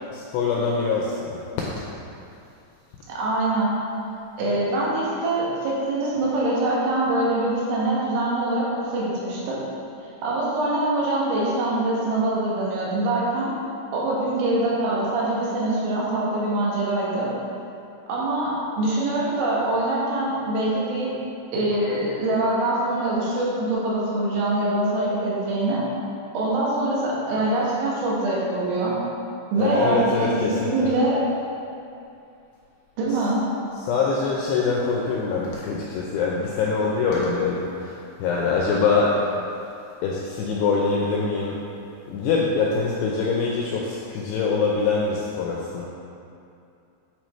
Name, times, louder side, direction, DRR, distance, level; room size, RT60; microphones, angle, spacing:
voice 1, 0.1-1.5 29.6-30.9 33.1-33.3 33.7-39.3 40.0-41.6 42.1-45.8, left 4 dB, 85° left, -3 dB, 2.4 m, -24 dB
voice 2, 3.1-3.8 4.4-9.6 10.2-13.5 13.9-17.3 18.1-21.1 21.5-25.8 26.3-29.0 29.5-31.2 33.0-33.4, right 2 dB, 85° right, -6 dB, 3.7 m, -24 dB
9.0 x 4.9 x 3.1 m, 2.6 s
omnidirectional pair, 5.4 m